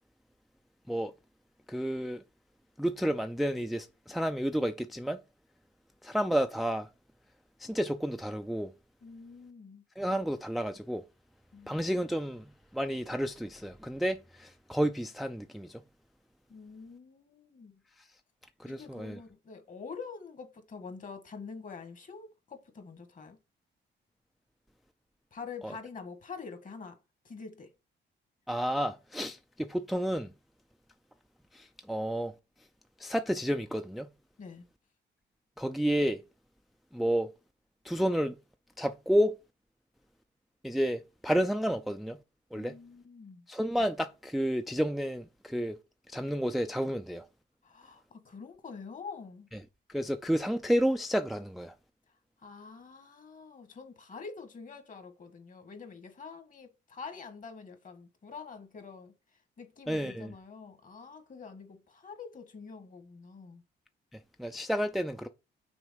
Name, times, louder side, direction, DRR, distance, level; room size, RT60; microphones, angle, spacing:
voice 1, 1.7-2.2 2.8-5.2 6.0-6.9 7.6-8.7 10.0-11.0 11.7-15.8 18.0-18.1 18.6-19.2 25.6-25.8 28.5-30.3 31.5-32.3 33.0-34.1 35.6-36.2 36.9-37.3 37.8-38.4 38.8-39.4 40.6-42.2 42.5-42.8 43.5-45.8 46.1-47.3 49.9-51.7 59.9-60.3 64.1-65.3, equal, ahead, 0.4 m, -31 dB
voice 2, 9.0-9.8 11.5-11.9 16.5-17.8 18.6-23.4 25.3-27.0 27.2-27.7 34.4-34.7 42.5-43.4 47.6-49.5 52.4-59.1 59.6-63.6, left 5 dB, 40° left, 1.7 m, -46 dB
6.2 x 3.5 x 5.2 m
cardioid pair, 90°, 20 cm